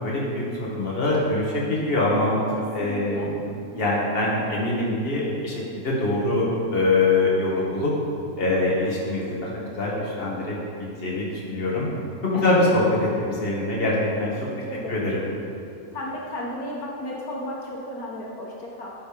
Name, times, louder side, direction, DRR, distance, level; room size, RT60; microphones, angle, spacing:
voice 1, 0.0-2.3 2.7-3.3 3.7-7.9 8.4-9.5 9.8-11.9 12.2-14.3 14.9-15.3, left 2 dB, 40° left, -5 dB, 2.0 m, -24 dB
voice 2, 2.6-3.3 12.3-12.8 14.4-15.1 15.9-18.9, left 1 dB, 85° left, -3 dB, 1.8 m, -34 dB
11.0 x 5.5 x 5.2 m, 2.5 s
omnidirectional pair, 1.6 m